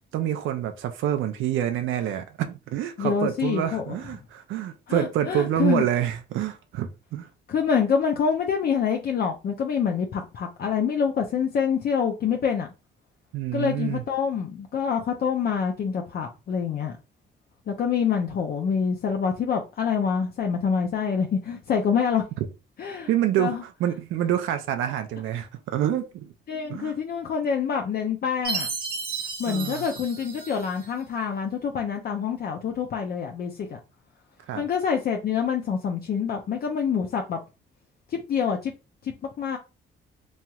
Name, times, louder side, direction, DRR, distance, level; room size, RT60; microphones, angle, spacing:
voice 1, 0.1-7.3 13.3-14.0 23.1-26.3 26.7-27.0 29.5-29.9 34.5-34.7, right 11 dB, 80° right, 0.5 m, -27 dB
voice 2, 3.0-3.9 4.9-5.8 7.5-12.7 13.5-17.0 17.7-22.2 22.8-23.1 23.4-23.6 26.5-28.7 29.4-33.8 34.5-37.4 38.1-38.7 39.0-39.6, left 6 dB, 50° left, 0.5 m, -26 dB
Chime, 28.4-30.9, right 4 dB, 50° right, 1.0 m, -33 dB
3.1 x 2.8 x 2.3 m
cardioid pair, 90°, 20 cm